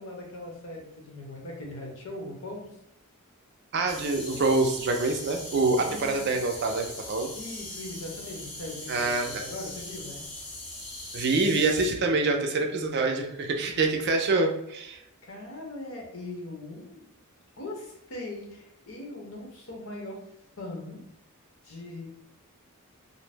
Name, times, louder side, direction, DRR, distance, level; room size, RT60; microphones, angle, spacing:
voice 1, 0.0-2.7 5.8-6.3 7.3-10.2 15.2-17.1 17.6-20.3 20.6-21.0 21.6-22.1, left 2 dB, 60° left, -1 dB, 0.8 m, -40 dB
voice 2, 3.7-7.3 8.9-9.4 11.1-15.0, right 3 dB, 50° right, 3 dB, 0.4 m, -26 dB
sound 1, 3.9-11.9, left 1 dB, 25° left, 0.6 m, -40 dB
2.6 x 2.0 x 3.3 m, 0.81 s
head